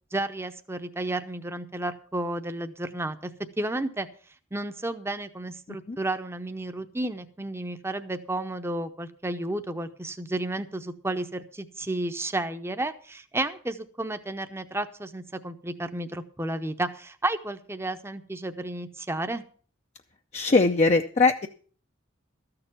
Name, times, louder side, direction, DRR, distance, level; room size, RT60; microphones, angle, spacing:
voice 1, 0.1-3.3 3.6-4.1 4.5-19.4, right 2 dB, 15° right, 9 dB, 0.7 m, -32 dB
voice 2, 20.3-21.5, left 3 dB, 35° left, 4 dB, 0.5 m, -21 dB
13.5 x 6.8 x 7.1 m, 0.43 s
head